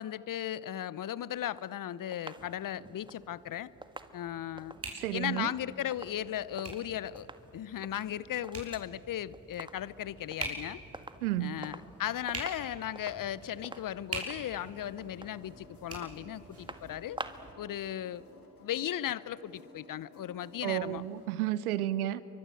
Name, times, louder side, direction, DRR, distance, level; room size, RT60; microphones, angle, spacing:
voice 1, 0.0-3.7 4.1-4.7 5.1-7.3 7.5-10.8 11.4-17.2 17.6-18.2 18.6-21.0, left 11 dB, 50° left, 19 dB, 0.9 m, -36 dB
sound 1, 1.4-6.9 7.2-7.5 7.8-8.9 9.2-10.0 10.3-10.6 10.9-12.0 12.3-17.6 17.9-18.0, right 2 dB, 10° right, 1.7 m, -48 dB
sound 2, 2.4-17.5, right 2 dB, 35° right, 6.2 m, -46 dB
voice 2, 4.9-5.5 11.2-11.6 20.6-22.3, right 14 dB, 80° right, 18 dB, 0.9 m, -32 dB
sound 3, 14.4-21.3, left 2 dB, 90° left, 2.3 m, -56 dB
28.5 x 24.0 x 7.7 m, 3.0 s
figure-of-eight pair, 40°, 43 cm